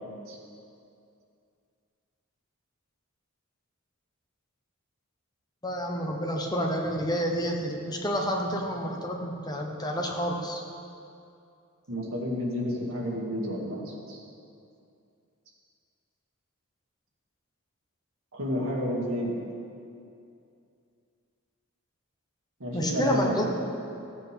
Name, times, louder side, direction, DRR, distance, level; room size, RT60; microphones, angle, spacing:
voice 1, 5.6-10.6 22.7-23.4, equal, 20° left, 1 dB, 0.9 m, -29 dB
voice 2, 11.9-14.2 18.3-19.3 22.6-23.5, equal, 70° right, -3 dB, 2.0 m, -31 dB
15.5 x 8.5 x 3.4 m, 2.5 s
head